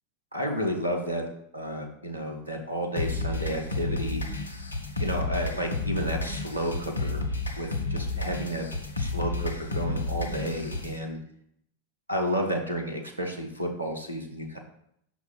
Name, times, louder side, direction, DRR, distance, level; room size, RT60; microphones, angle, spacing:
voice 1, 0.3-1.2 1.5-4.2 5.0-7.2 7.5-8.6 9.0-11.2 12.1-14.6, equal, 85° right, 2 dB, 1.2 m, -31 dB
sound 1, 3.0-11.0, left 2 dB, 80° left, 0.8 m, -31 dB
5.8 x 4.1 x 6.0 m, 0.72 s
figure-of-eight pair, 90°, 0 cm